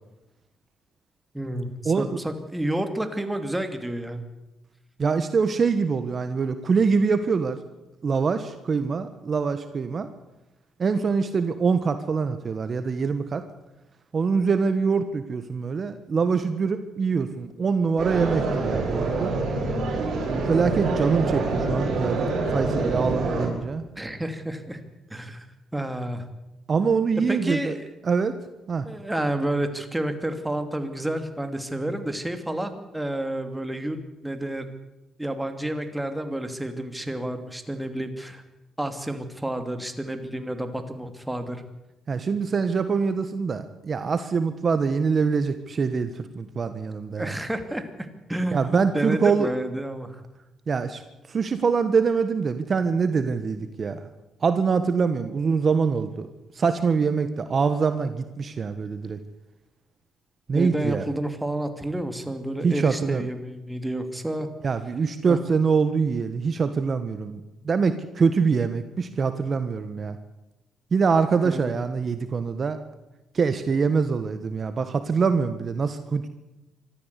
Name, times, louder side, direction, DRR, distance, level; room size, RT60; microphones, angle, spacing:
voice 1, 1.3-4.2 24.0-24.8 25.1-25.5 25.7-26.2 27.3-27.9 28.8-34.7 35.2-38.4 38.8-41.6 47.2-50.2 60.5-64.5 65.3-65.4 71.4-71.7, right 1 dB, 10° right, 7 dB, 2.7 m, -30 dB
voice 2, 1.8-2.2 5.0-7.6 8.0-10.1 10.8-13.4 14.1-19.4 20.5-23.8 26.7-27.7 28.0-28.4 28.7-28.9 42.1-47.3 48.5-49.5 50.7-51.0 51.3-54.1 54.4-56.3 56.5-59.2 60.5-61.1 62.6-63.2 64.6-70.2 70.9-72.8 73.3-76.3, right 5 dB, 45° right, 10 dB, 1.4 m, -24 dB
sound 1, 18.0-23.5, right 3 dB, 60° right, 7.5 m, -26 dB
24.5 x 14.0 x 8.4 m, 0.99 s
cardioid pair, 90°, 0 cm